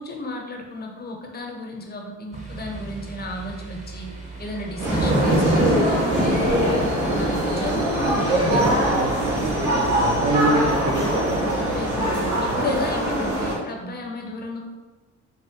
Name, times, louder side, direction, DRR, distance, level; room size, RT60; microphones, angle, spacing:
voice 1, 0.0-4.1 4.4-8.6 11.7-14.6, left 2 dB, 35° left, 1 dB, 0.6 m, -33 dB
sound 1, 2.3-12.5, right 1 dB, 25° right, 0.7 m, -27 dB
sound 2, 4.8-13.6, right 1 dB, 75° right, 1.2 m, -23 dB
voice 2, 8.6-11.3 12.5-12.7, right 2 dB, 60° right, 1 dB, 0.6 m, -25 dB
3.5 x 2.0 x 2.8 m, 1.2 s
cardioid pair, 90°, 30 cm